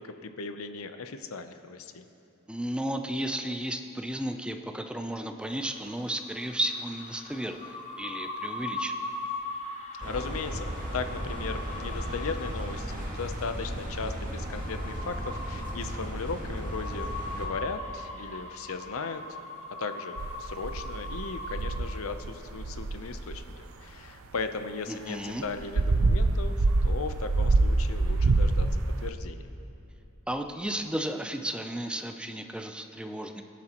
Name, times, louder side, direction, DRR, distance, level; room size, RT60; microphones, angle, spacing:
voice 1, 0.0-2.0 10.0-19.2 19.8-28.7 29.0-29.5, left 4 dB, 90° left, 8 dB, 0.7 m, -37 dB
voice 2, 2.5-9.0 24.9-25.4 30.3-33.4, right 1 dB, 5° right, 6 dB, 0.5 m, -33 dB
sound 1, 5.4-21.8, left 2 dB, 35° left, 1.1 m, -40 dB
sound 2, 10.0-17.5, equal, 40° right, 1.9 m, -35 dB
sound 3, 20.2-21.9 22.2-22.3 22.6-23.4 25.5-29.1, right 2 dB, 85° right, 0.6 m, -25 dB
22.0 x 10.0 x 3.0 m, 2.9 s
head